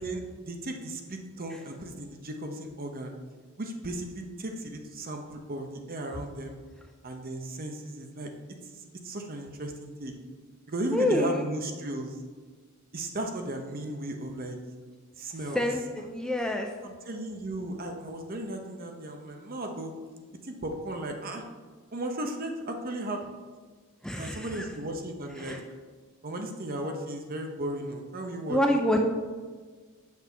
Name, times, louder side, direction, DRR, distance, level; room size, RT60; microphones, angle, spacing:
voice 1, 0.0-3.1 3.6-6.6 7.0-8.3 9.0-10.1 10.7-12.2 12.9-14.6 15.2-15.6 16.8-19.9 20.4-21.4 21.9-23.2 24.2-25.6 26.2-28.6, right 1 dB, 40° right, 4 dB, 0.9 m, -35 dB
voice 2, 10.9-11.5 15.5-16.7 24.0-24.7 25.4-25.6 28.5-29.0, left 1 dB, 5° left, 2 dB, 0.4 m, -27 dB
7.9 x 5.9 x 4.5 m, 1.5 s
head